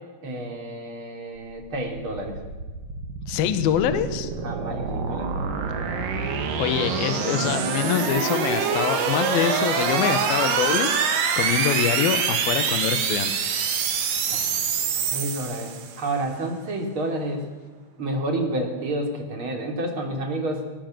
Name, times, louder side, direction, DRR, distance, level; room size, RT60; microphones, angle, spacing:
voice 1, 0.2-2.4 4.4-5.3 14.3-14.5 15.1-17.5 18.0-20.7, right 1 dB, 35° right, 3 dB, 3.4 m, -29 dB
sound 1, 1.5-16.1, right 6 dB, 60° right, 3.3 m, -26 dB
voice 2, 3.3-4.3 6.6-10.9 11.4-13.3, left 10 dB, 70° left, 11 dB, 2.8 m, -24 dB
20.5 x 18.5 x 7.8 m, 1.3 s
omnidirectional pair, 4.9 m